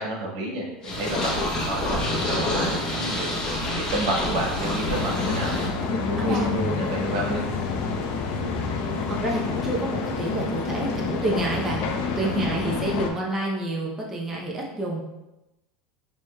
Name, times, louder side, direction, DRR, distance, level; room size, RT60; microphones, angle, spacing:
voice 1, 0.0-1.3 1.6-3.4 3.8-5.5 6.1-7.4 12.3-12.5, right 1 dB, 80° right, -2 dB, 1.3 m, -30 dB
Purr, 0.8-5.7, left 1 dB, 25° left, 0.9 m, -27 dB
sound 1, 4.8-13.1, left 5 dB, 50° left, 0.5 m, -28 dB
voice 2, 5.9-6.5 8.3-8.5 9.1-11.9 12.2-15.0, right 1 dB, 15° right, -3 dB, 0.6 m, -28 dB
6.3 x 2.9 x 2.2 m, 0.97 s
supercardioid pair, 155°, 3 cm